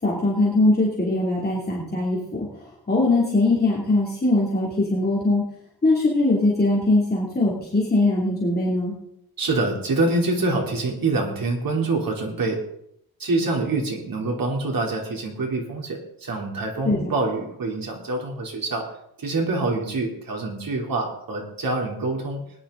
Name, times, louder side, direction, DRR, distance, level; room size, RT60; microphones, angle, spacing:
voice 1, 0.0-5.4 5.8-9.0 16.8-17.1, left 2 dB, 25° left, -5 dB, 2.8 m, -21 dB
voice 2, 9.4-12.6 13.2-18.9 19.2-22.4, right 2 dB, 65° right, 0 dB, 3.5 m, -25 dB
19.5 x 11.0 x 3.9 m, 0.74 s
wide cardioid pair, 160°, 37 cm